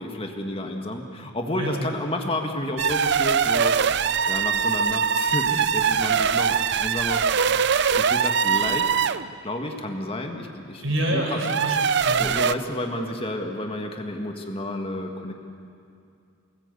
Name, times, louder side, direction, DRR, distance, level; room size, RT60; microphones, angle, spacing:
voice 1, 0.0-3.8 4.3-7.3 8.0-8.9 9.4-10.8 11.1-11.4 12.2-15.3, left 1 dB, 25° left, 3 dB, 1.8 m, -31 dB
voice 2, 1.5-1.8 10.8-11.7 12.0-12.2, right 1 dB, 75° right, 0 dB, 6.0 m, -26 dB
sound 1, 2.8-9.3 11.3-12.5, right 7 dB, 55° right, 0.6 m, -22 dB
24.0 x 19.0 x 8.3 m, 2.4 s
head